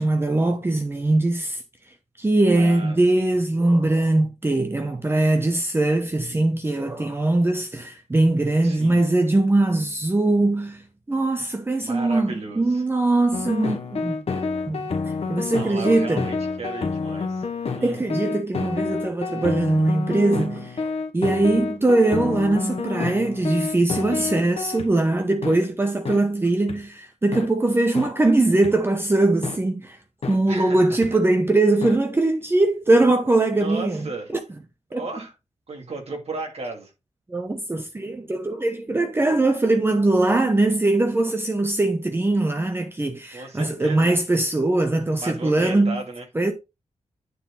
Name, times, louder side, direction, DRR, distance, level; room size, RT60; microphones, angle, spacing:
voice 1, 0.0-1.6 2.2-14.2 14.7-16.3 17.8-30.0 30.3-34.1 34.9-35.1 37.3-46.0 46.3-46.5, right 2 dB, 20° right, 0.9 m, -21 dB
voice 2, 2.5-3.3 8.6-9.0 11.8-12.8 15.5-17.4 17.7-18.0 30.5-31.0 33.5-34.3 34.9-35.3 35.7-36.9 43.3-44.1 45.2-46.2, right 3 dB, 65° right, 2.6 m, -35 dB
sound 1, 13.3-24.9 25.4-25.6 26.0-26.2 26.7-26.8 27.3-27.5 27.9-28.1 28.6-28.7 29.4-29.6 30.2-30.4 31.0-31.1 31.8-31.9, left 4 dB, 60° left, 1.3 m, -28 dB
9.4 x 4.5 x 3.9 m
wide cardioid pair, 155°, 12 cm